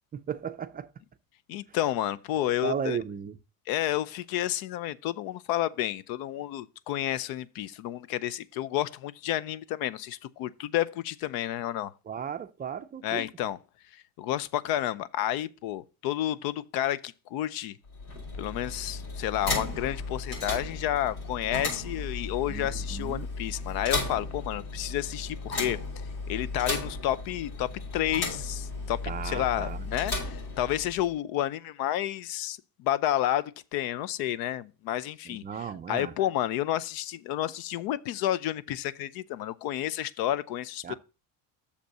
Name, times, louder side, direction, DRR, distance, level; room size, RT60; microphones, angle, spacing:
voice 1, 0.1-0.9 1.7-1.8 2.4-3.4 12.1-13.3 22.5-23.3 29.1-29.9 35.3-36.1 40.8-40.9, right 7 dB, 25° right, 0.4 m, -35 dB
voice 2, 1.5-3.0 3.7-11.9 13.0-13.6 13.9-17.8 18.4-25.8 26.3-27.7 27.9-35.4 35.9-40.9, left 13 dB, 70° left, 0.6 m, -30 dB
sound 1, 17.8-31.1, left 3 dB, 85° left, 5.2 m, -35 dB
6.8 x 5.1 x 6.6 m
cardioid pair, 110°, 37 cm